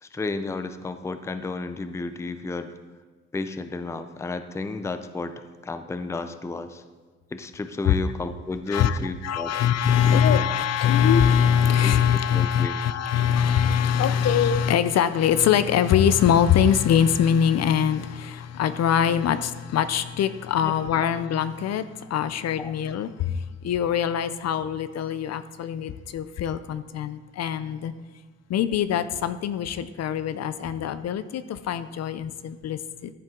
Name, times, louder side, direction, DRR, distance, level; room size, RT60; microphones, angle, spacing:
voice 1, 0.0-2.7 3.3-6.8 7.3-9.5 10.0-10.4 11.8-11.9 12.3-12.8 20.6-20.7 21.0-21.1 22.6-22.7, left 3 dB, 10° left, 10 dB, 0.5 m, -32 dB
voice 2, 8.7-21.8 22.1-23.3 23.6-27.9 28.5-33.1, left 8 dB, 60° left, 13 dB, 0.5 m, -23 dB
13.5 x 7.5 x 3.8 m, 1.4 s
cardioid pair, 125°, 30 cm